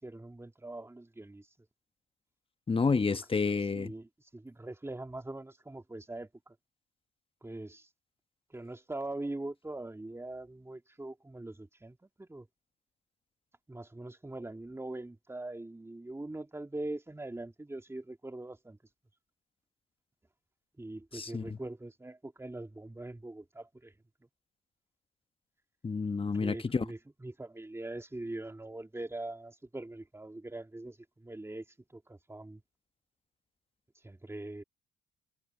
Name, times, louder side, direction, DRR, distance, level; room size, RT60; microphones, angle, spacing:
voice 1, 0.0-1.5 3.7-6.5 7.4-7.9 8.5-12.5 13.7-18.8 20.8-23.9 26.4-31.6 31.9-32.6 34.0-34.6, right 2 dB, 10° right, 2.5 m, -42 dB
voice 2, 2.7-3.9 21.1-21.6 25.8-26.9, left 4 dB, 25° left, 1.1 m, -30 dB
supercardioid pair, 65°, 21 cm